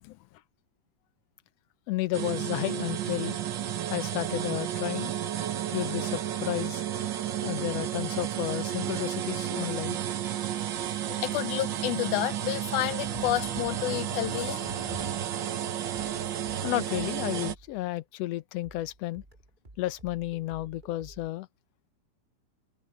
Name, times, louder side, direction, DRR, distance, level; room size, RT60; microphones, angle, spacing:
voice 1, 1.9-3.4 3.9-5.1 5.7-6.8 7.4-10.0 16.6-19.2 19.8-21.5, left 15 dB, 70° left, 1.7 m, -32 dB
sound 1, 2.1-17.5, right 10 dB, 90° right, 1.0 m, -32 dB
voice 2, 11.1-15.0, left 16 dB, 85° left, 2.2 m, -30 dB
sound 2, 17.5-18.2 18.6-21.3, right 2 dB, 15° right, 2.4 m, -54 dB
omnidirectional pair, 3.4 m